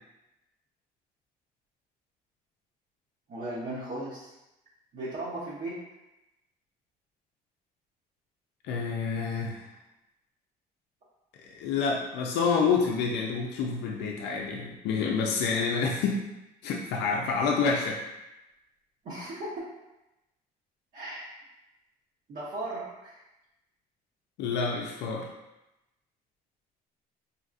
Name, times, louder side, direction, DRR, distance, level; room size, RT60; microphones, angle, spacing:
voice 1, 3.3-4.3 4.9-5.8 19.0-19.7 20.9-21.3 22.3-23.2, right 1 dB, 50° right, -8 dB, 0.9 m, -36 dB
voice 2, 8.6-9.7 11.5-16.2 16.6-18.0 24.4-25.2, left 5 dB, 85° left, 0 dB, 0.5 m, -28 dB
4.1 x 2.8 x 2.5 m, 0.95 s
cardioid pair, 110°, 17 cm